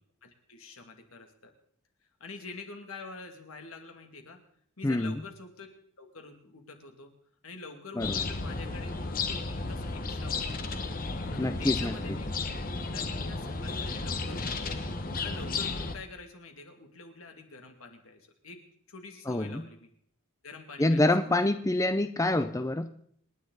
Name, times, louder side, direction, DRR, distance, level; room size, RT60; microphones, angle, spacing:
voice 1, 0.2-1.5 2.2-4.4 4.8-5.7 6.0-7.1 7.4-10.7 11.3-12.3 12.9-14.8 15.2-18.6 18.9-19.9 20.4-21.5, left 3 dB, 75° left, 4 dB, 2.5 m, -46 dB
voice 2, 4.8-5.2 8.0-8.2 11.4-12.0 19.3-19.6 20.8-22.9, left 1 dB, 15° left, 10 dB, 0.5 m, -26 dB
sound 1, 8.0-15.9, left 3 dB, 40° left, 1.2 m, -33 dB
27.0 x 10.0 x 4.0 m, 0.65 s
head